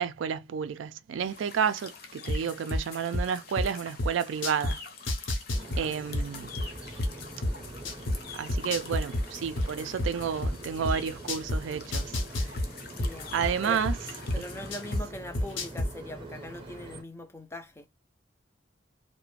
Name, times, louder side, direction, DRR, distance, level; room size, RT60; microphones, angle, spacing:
voice 1, 0.0-4.8 5.8-6.5 8.3-12.6 13.3-13.9 14.4-14.5, right 7 dB, 75° right, 0.3 m, -31 dB
sound 1, 1.2-15.0, left 5 dB, 50° left, 0.6 m, -47 dB
sound 2, 2.3-4.7 5.1-8.2 8.5-11.6 11.9-15.0 15.3-15.9, left 1 dB, 85° left, 0.8 m, -28 dB
sound 3, 5.5-17.0, right 1 dB, 25° right, 0.6 m, -44 dB
voice 2, 5.6-6.0 13.0-13.3 13.6-13.8 14.3-17.9, left 1 dB, 15° left, 0.3 m, -41 dB
2.4 x 2.1 x 3.1 m
head